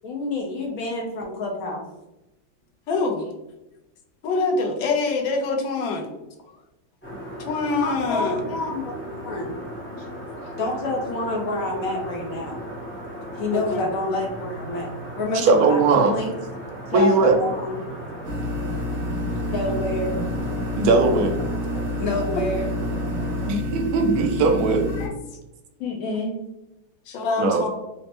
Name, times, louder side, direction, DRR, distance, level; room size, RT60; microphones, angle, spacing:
voice 1, 0.0-1.8 7.8-8.9 9.2-9.5 10.6-12.6 13.4-14.9 15.2-16.3 16.9-17.8 19.5-20.2 22.0-22.7 25.8-26.3, left 2 dB, 60° left, -1 dB, 1.0 m, -28 dB
voice 2, 2.9-3.3 4.2-6.1 7.4-8.4 10.3-10.6 13.5-13.9 24.9-25.1 27.1-27.7, left 3 dB, 75° left, 3 dB, 1.3 m, -25 dB
sound 1, 7.0-23.5, equal, 15° left, 0.4 m, -36 dB
voice 3, 15.4-16.1 16.9-17.4 20.7-21.4 23.5-24.8 27.4-27.7, right 3 dB, 75° right, 3 dB, 0.8 m, -19 dB
sound 2, 18.2-25.1, equal, 60° right, 1.1 m, -28 dB
5.3 x 2.1 x 2.9 m, 0.94 s
omnidirectional pair, 2.2 m